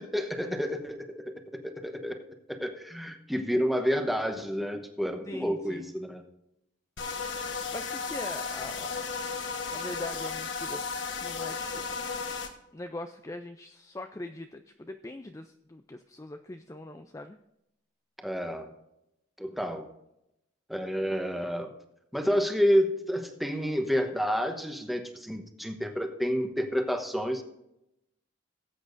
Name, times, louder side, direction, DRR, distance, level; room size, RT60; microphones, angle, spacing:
voice 1, 0.0-1.3 1.6-2.2 2.5-6.2 18.2-18.7 19.4-19.9 20.7-21.7 22.1-27.4, equal, ahead, 4 dB, 1.0 m, -29 dB
voice 2, 5.3-5.9 7.7-9.1 9.7-10.8 11.1-11.9 12.7-17.4, left 2 dB, 15° left, 7 dB, 0.4 m, -42 dB
sound 1, 7.0-12.5, left 5 dB, 65° left, 1.3 m, -34 dB
18.5 x 8.6 x 2.6 m, 0.85 s
head